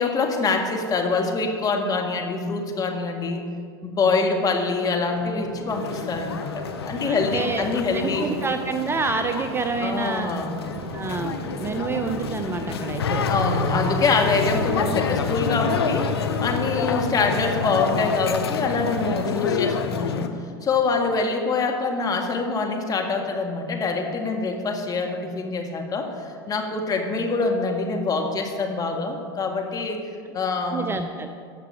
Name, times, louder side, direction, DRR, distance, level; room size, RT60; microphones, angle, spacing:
voice 1, 0.0-3.5 3.8-8.3 9.8-10.6 13.3-20.4 20.6-30.0 30.3-31.0, left 4 dB, 30° left, 2 dB, 1.7 m, -25 dB
sound 1, 4.8-17.6, left 3 dB, 50° left, 2.9 m, -43 dB
sound 2, 5.7-20.3, left 5 dB, 85° left, 0.7 m, -28 dB
voice 2, 7.0-7.7 7.9-10.3 10.9-13.2 30.7-31.3, right 4 dB, 20° right, 7 dB, 0.6 m, -28 dB
sound 3, 10.6-17.9, right 1 dB, 50° right, 2.8 m, -37 dB
16.0 x 6.0 x 4.9 m, 2.2 s
hypercardioid pair, 90°, 13 cm